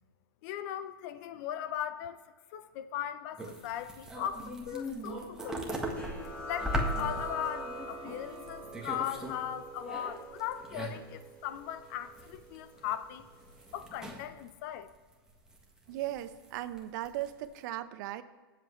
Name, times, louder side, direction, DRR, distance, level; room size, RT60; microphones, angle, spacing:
voice 1, 0.4-2.2 2.5-6.0 6.4-13.3 13.7-14.9, left 11 dB, 45° left, 0.6 m, -38 dB
sound 1, 3.4-9.4 9.7-11.2 11.6-11.7 12.0-12.5 12.8-14.5 14.9-15.6 16.0-16.8 17.0-17.6, equal, 5° right, 1.5 m, -39 dB
sound 2, 6.0-13.2, equal, 10° left, 3.7 m, -43 dB
voice 2, 15.9-18.2, right 14 dB, 50° right, 0.8 m, -37 dB
21.0 x 7.7 x 3.2 m
hypercardioid pair, 135°, 13 cm